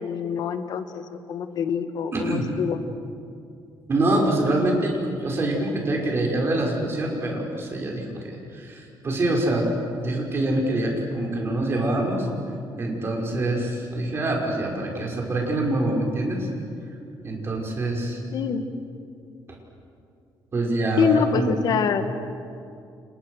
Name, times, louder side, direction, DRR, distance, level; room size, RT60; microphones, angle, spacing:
voice 1, 0.0-2.8 18.3-18.6 21.0-22.0, left 7 dB, 60° left, 9 dB, 1.7 m, -25 dB
voice 2, 2.1-2.5 3.9-9.6 10.0-12.3 12.8-16.5 17.2-18.2 20.5-21.1 21.3-21.5, right 1 dB, 30° right, 0 dB, 5.7 m, -25 dB
30.0 x 29.0 x 6.5 m, 2.5 s
cardioid pair, 155°, 8 cm